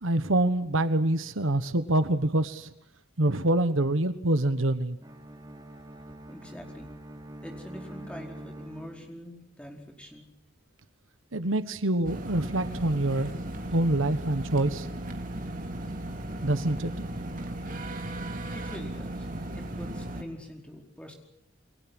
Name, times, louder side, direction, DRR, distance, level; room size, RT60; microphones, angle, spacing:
voice 1, 0.0-2.7 3.2-5.0 11.3-13.3 13.7-14.9 16.4-16.9, right 1 dB, 80° right, 11 dB, 1.4 m, -25 dB
Bowed string instrument, 5.0-9.4, right 1 dB, 20° right, 2.9 m, -45 dB
voice 2, 6.3-6.9 7.4-10.3 18.5-19.3 19.6-21.1, equal, 5° left, 1 dB, 4.8 m, -44 dB
sound 1, 12.0-20.2, right 1 dB, 40° right, 3.4 m, -36 dB
29.5 x 22.5 x 6.2 m, 0.78 s
head